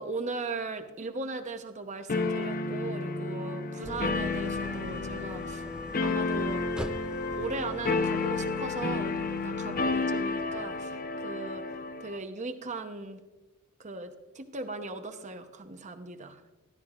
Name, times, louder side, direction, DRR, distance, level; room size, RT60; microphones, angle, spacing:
voice 1, 0.0-5.7 6.0-6.6 7.4-11.6 12.0-13.2 13.8-16.5, right 3 dB, 35° right, 8 dB, 0.8 m, -38 dB
sound 1, 2.1-12.2, left 3 dB, 40° left, 0.7 m, -31 dB
Idling, 3.8-10.9, right 1 dB, 5° right, 0.3 m, -44 dB
13.5 x 12.5 x 2.4 m, 1.1 s
head